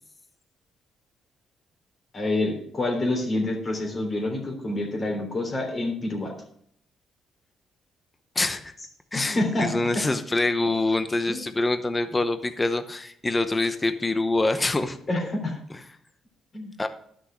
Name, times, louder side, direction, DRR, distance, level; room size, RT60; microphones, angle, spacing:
voice 1, 2.1-6.3 9.1-9.7 11.3-11.4 15.1-15.6 16.5-16.7, left 2 dB, 35° left, 1 dB, 3.4 m, -27 dB
voice 2, 8.3-8.7 9.1-15.3 16.8-16.9, left 2 dB, 20° left, 10 dB, 0.8 m, -25 dB
11.5 x 6.3 x 6.3 m, 0.68 s
cardioid pair, 90°, 0 cm